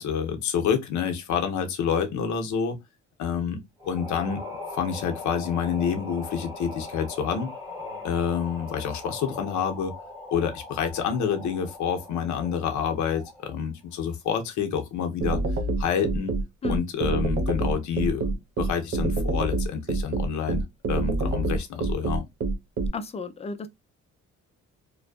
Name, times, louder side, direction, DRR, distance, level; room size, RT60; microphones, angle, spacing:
voice 1, 0.0-2.8 3.2-4.4 4.7-7.5 8.0-9.9 10.3-15.4 15.8-16.4 16.7-22.2, left 7 dB, 70° left, 0.6 m, -28 dB
sound 1, 3.8-13.5, left 3 dB, 10° right, 1.1 m, -40 dB
sound 2, 15.2-22.9, right 3 dB, 50° right, 0.6 m, -26 dB
voice 2, 22.9-23.7, left 4 dB, 20° left, 0.4 m, -32 dB
2.5 x 2.2 x 2.2 m
cardioid pair, 90°, 30 cm